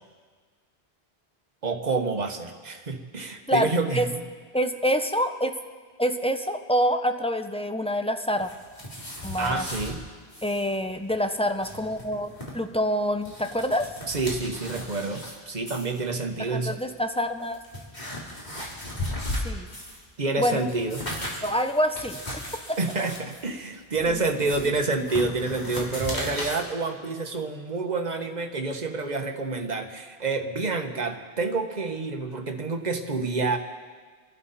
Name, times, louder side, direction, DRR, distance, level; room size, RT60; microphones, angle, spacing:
voice 1, 1.6-4.2 9.4-10.0 14.1-16.8 20.2-21.0 22.8-33.6, right 3 dB, 40° right, 5 dB, 1.3 m, -28 dB
voice 2, 3.5-4.1 4.5-5.5 6.0-8.5 9.2-9.7 10.4-13.9 16.4-17.6 19.4-19.7 20.4-20.6 21.4-22.2 22.7-22.8 24.1-24.2, equal, 5° left, 7 dB, 0.6 m, -26 dB
sound 1, 8.4-9.9 10.3-10.7 10.9-11.0 11.4-12.5 13.0-15.3 15.7-16.0 16.8-16.9 17.4-20.0 20.4-26.6, left 1 dB, 40° left, 3.3 m, -36 dB
27.5 x 11.5 x 4.2 m, 1.5 s
omnidirectional pair, 1.1 m